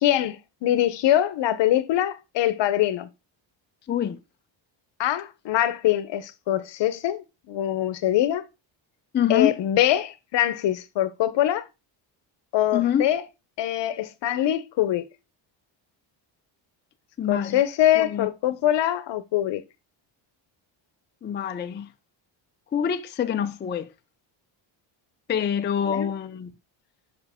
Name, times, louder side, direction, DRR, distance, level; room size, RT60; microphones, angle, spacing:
voice 1, 0.0-3.1 5.0-8.4 9.3-11.6 12.5-13.2 13.6-15.0 17.3-19.6 25.8-26.1, left 12 dB, 65° left, 0.8 m, -23 dB
voice 2, 3.9-4.2 9.1-9.5 12.7-13.0 17.2-17.6 18.0-18.3 21.2-21.9 22.7-23.9 25.3-26.5, left 8 dB, 25° left, 0.4 m, -25 dB
7.1 x 5.2 x 3.5 m
cardioid pair, 140°, 46 cm